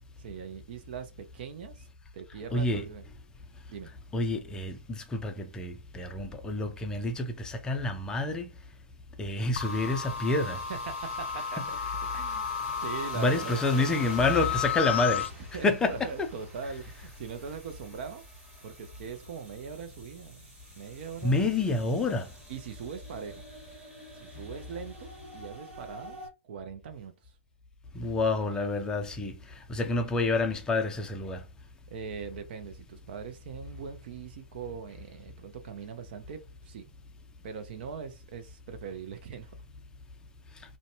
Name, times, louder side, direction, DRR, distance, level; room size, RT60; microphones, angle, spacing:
voice 1, 0.2-1.9 2.1-3.0 3.7-3.9 10.7-11.8 12.1-12.5 12.8-13.9 15.5-18.2 18.6-21.5 22.5-23.4 24.2-26.2 26.4-27.3 31.9-36.8 37.4-39.5, right 6 dB, 50° right, 0.5 m, -41 dB
voice 2, 2.5-2.9 4.1-8.5 9.2-10.6 11.6-11.7 13.1-16.3 21.2-22.3 27.9-29.4 29.7-31.4, left 2 dB, 10° left, 0.4 m, -28 dB
sound 1, 9.5-26.3, equal, 15° right, 1.3 m, -48 dB
sound 2, 9.6-15.3, left 8 dB, 75° left, 0.6 m, -33 dB
2.6 x 2.2 x 2.6 m
hypercardioid pair, 135°, 7 cm